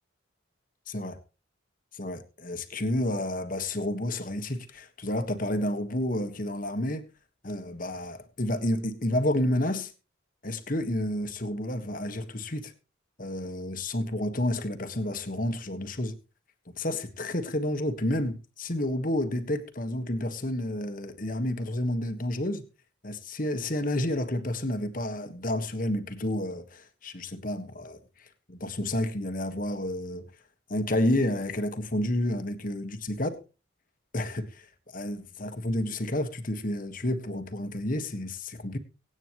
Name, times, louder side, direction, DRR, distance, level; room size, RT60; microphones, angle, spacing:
voice 1, 0.9-1.2 1.9-7.1 7.4-9.9 10.4-12.7 13.2-16.1 16.7-22.6 23.0-30.3 30.7-33.3 34.1-38.8, left 1 dB, 40° left, 1.5 m, -30 dB
24.5 x 9.1 x 3.1 m
head